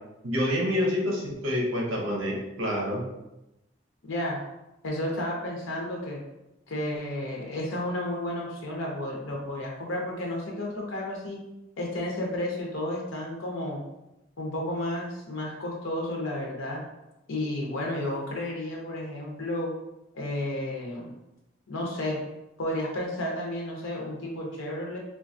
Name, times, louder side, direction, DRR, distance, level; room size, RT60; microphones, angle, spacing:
voice 1, 0.2-3.0, left 1 dB, 85° right, -2 dB, 0.7 m, -27 dB
voice 2, 4.0-4.4 4.8-6.2 6.7-11.4 11.8-13.8 14.4-16.8 17.3-19.7 20.1-21.1 21.7-22.2 22.6-25.0, left 1 dB, 90° left, -1 dB, 0.6 m, -32 dB
3.0 x 2.2 x 2.6 m, 0.92 s
head